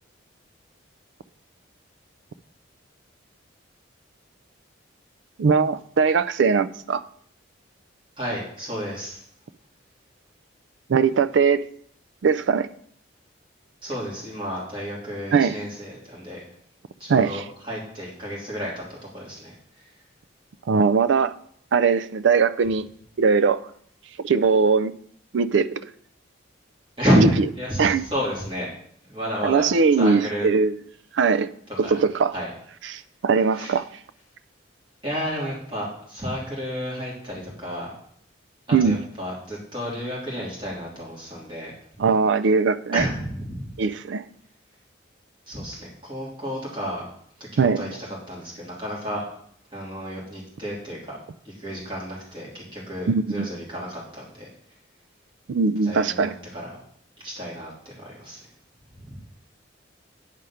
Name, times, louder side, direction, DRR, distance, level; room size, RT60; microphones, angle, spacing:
voice 1, 5.4-7.0 10.9-11.6 12.2-12.7 15.3-15.6 17.1-17.4 20.7-21.3 21.7-22.9 23.2-23.6 24.2-24.9 25.3-25.8 27.2-27.3 27.8-28.1 29.4-30.7 31.1-31.5 31.8-32.3 32.9-33.9 38.7-39.0 42.0-43.0 43.8-44.2 47.6-47.8 53.1-53.5 55.5-56.4, right 5 dB, 70° right, 0.4 m, -20 dB
voice 2, 8.2-9.2 13.8-16.4 17.0-19.5 27.0-28.7 29.1-29.7 30.0-30.5 31.8-32.0 32.3-32.5 33.5-33.8 35.0-37.9 38.7-41.7 42.9-43.7 45.5-47.0 47.5-49.2 49.7-51.2 51.4-54.5 55.8-56.7 57.2-58.4 59.0-59.2, equal, 25° right, 2.9 m, -30 dB
9.1 x 4.9 x 5.7 m
head